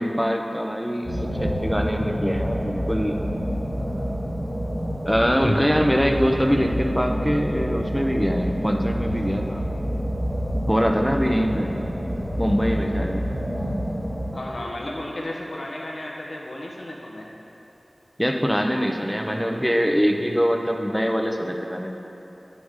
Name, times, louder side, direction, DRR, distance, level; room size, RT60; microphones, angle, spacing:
voice 1, 0.0-3.2 5.0-9.6 10.7-11.7 12.4-13.2 18.2-21.9, equal, ahead, 2 dB, 0.7 m, -23 dB
sound 1, 1.0-14.3, equal, 45° right, 1.7 m, -28 dB
voice 2, 14.3-17.3, left 1 dB, 70° left, -2 dB, 1.1 m, -34 dB
9.9 x 6.4 x 3.7 m, 2.9 s
wide cardioid pair, 40°, 0 cm